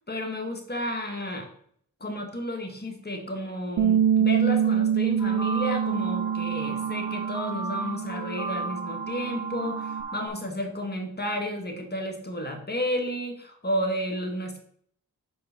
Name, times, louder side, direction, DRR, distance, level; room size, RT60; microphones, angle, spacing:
voice 1, 0.1-1.5 2.0-14.6, equal, 30° left, 3 dB, 1.7 m, -32 dB
Bass guitar, 3.8-10.0, right 8 dB, 70° right, 0.6 m, -26 dB
sound 1, 5.2-10.3, right 3 dB, 10° right, 2.2 m, -35 dB
5.4 x 4.7 x 5.9 m, 0.64 s
cardioid pair, 60°, 35 cm